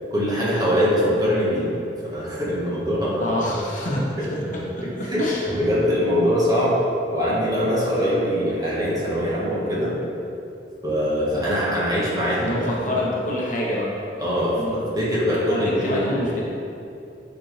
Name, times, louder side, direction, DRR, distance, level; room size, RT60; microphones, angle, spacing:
voice 1, 0.1-1.7 2.0-3.3 4.2-4.3 4.8-6.8 7.1-9.9 10.8-12.6 12.9-13.0 14.2-16.4, equal, 20° right, -7 dB, 1.6 m, -23 dB
voice 2, 3.2-5.5 12.4-13.9 14.6-14.8 15.5-16.4, left 1 dB, 50° left, -4 dB, 1.1 m, -27 dB
9.8 x 4.2 x 3.4 m, 2.7 s
head